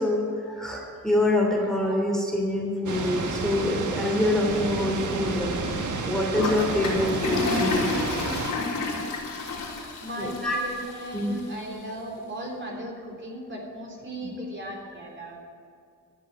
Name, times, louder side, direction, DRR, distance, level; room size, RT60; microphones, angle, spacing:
voice 1, 0.0-5.5 6.1-7.9 10.2-10.6 11.1-11.4, left 1 dB, ahead, -1 dB, 3.0 m, -25 dB
sound 1, 2.9-8.5, right 4 dB, 65° right, 1.4 m, -31 dB
Toilet flush, 6.3-11.4, left 3 dB, 75° left, 3.6 m, -30 dB
voice 2, 10.0-15.4, right 1 dB, 35° right, -1 dB, 3.4 m, -37 dB
13.0 x 6.5 x 9.3 m, 2.3 s
cardioid pair, 60°, 32 cm